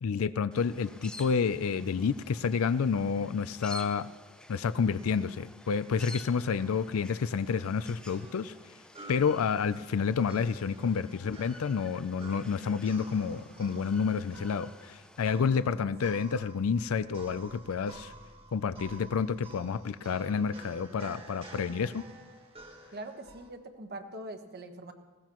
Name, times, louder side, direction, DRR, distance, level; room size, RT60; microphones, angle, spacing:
voice 1, 0.0-4.1 4.5-8.5 9.1-18.1 18.5-22.0, left 6 dB, 70° left, 15 dB, 0.4 m, -29 dB
sound 1, 0.5-15.3, left 1 dB, 5° left, 0.5 m, -51 dB
sound 2, 7.5-23.5, right 2 dB, 25° right, 1.4 m, -51 dB
voice 2, 15.6-16.2 22.9-24.9, right 1 dB, 50° right, 6 dB, 1.3 m, -44 dB
20.0 x 17.0 x 3.0 m, 1.3 s
head